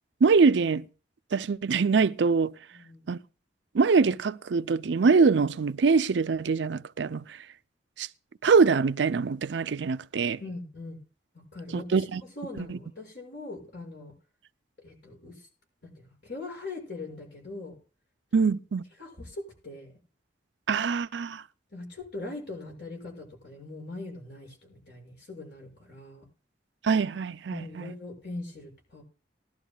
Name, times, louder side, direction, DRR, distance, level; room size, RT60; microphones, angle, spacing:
voice 1, 0.2-0.9 1.3-2.5 3.1-3.2 3.7-7.4 8.0-8.1 8.4-10.4 11.7-12.2 12.7-12.8 18.3-18.8 20.7-21.4 26.8-27.9, right 5 dB, 80° right, 0.5 m, -23 dB
voice 2, 2.7-3.1 10.4-11.0 11.5-14.1 14.8-15.5 15.8-17.8 19.0-19.9 21.7-26.2 27.5-29.0, left 2 dB, 65° left, 6.0 m, -41 dB
19.5 x 12.0 x 2.3 m
head